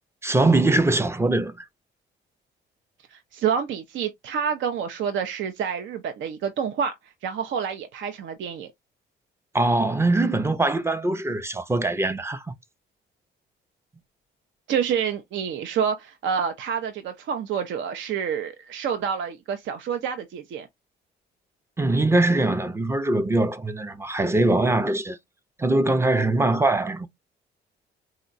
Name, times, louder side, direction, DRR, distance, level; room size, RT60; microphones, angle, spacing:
voice 1, 0.2-1.6 9.5-12.5 21.8-25.2 25.6-27.1, right 2 dB, 15° right, 0.4 m, -22 dB
voice 2, 3.1-6.9 7.2-8.7 14.7-20.7, right 7 dB, 70° right, 0.5 m, -28 dB
3.8 x 2.1 x 2.5 m
cardioid pair, 90°, 20 cm